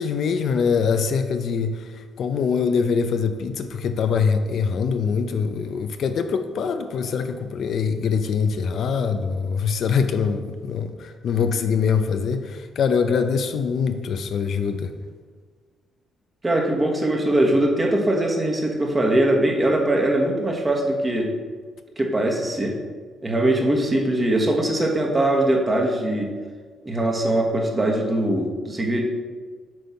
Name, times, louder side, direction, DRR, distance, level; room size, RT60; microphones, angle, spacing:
voice 1, 0.0-1.9 2.2-14.9, left 6 dB, 65° left, 8 dB, 0.5 m, -23 dB
voice 2, 16.4-21.3 22.0-22.7 23.2-26.3 26.8-29.0, right 1 dB, 25° right, 1 dB, 1.3 m, -21 dB
7.6 x 3.6 x 5.7 m, 1.5 s
cardioid pair, 90°, 0 cm